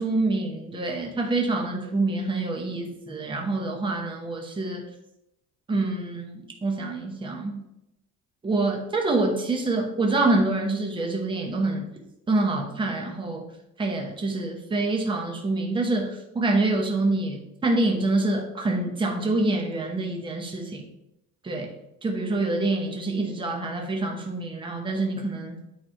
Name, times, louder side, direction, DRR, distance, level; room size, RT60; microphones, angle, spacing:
voice 1, 0.0-4.8 5.7-7.6 8.4-11.9 12.3-13.4 13.8-20.9 21.4-21.7 22.0-25.6, right 2 dB, 15° right, 1 dB, 0.9 m, -26 dB
8.9 x 3.3 x 4.5 m, 0.85 s
cardioid pair, 175°, 30 cm